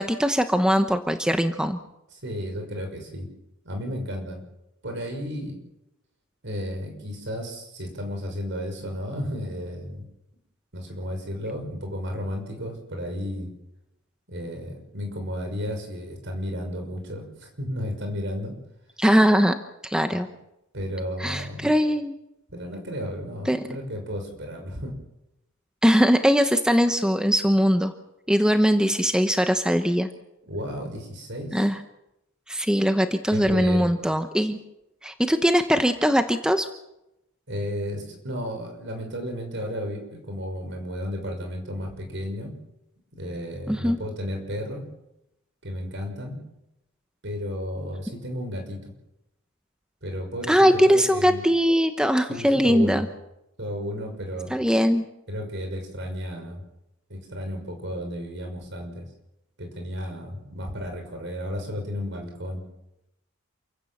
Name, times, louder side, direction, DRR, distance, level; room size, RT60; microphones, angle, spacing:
voice 1, 0.0-1.8 19.0-19.5 19.8-20.3 21.2-22.1 23.5-23.6 25.8-27.9 28.3-30.1 31.5-31.8 32.5-34.6 35.0-36.7 43.7-44.0 50.5-53.1 54.5-55.0, equal, 5° right, 7 dB, 1.0 m, -21 dB
voice 2, 2.1-3.3 3.6-4.4 4.8-5.6 6.4-10.1 10.7-13.5 14.3-18.5 20.7-21.7 22.5-24.9 30.4-31.6 33.3-33.9 37.5-42.5 43.1-44.8 45.6-46.4 47.2-48.9 50.0-51.4 52.3-53.0 53.6-54.5 55.3-56.6 57.1-59.0 59.6-62.6, equal, 60° right, 4 dB, 6.2 m, -33 dB
28.5 x 16.0 x 7.3 m, 0.89 s
head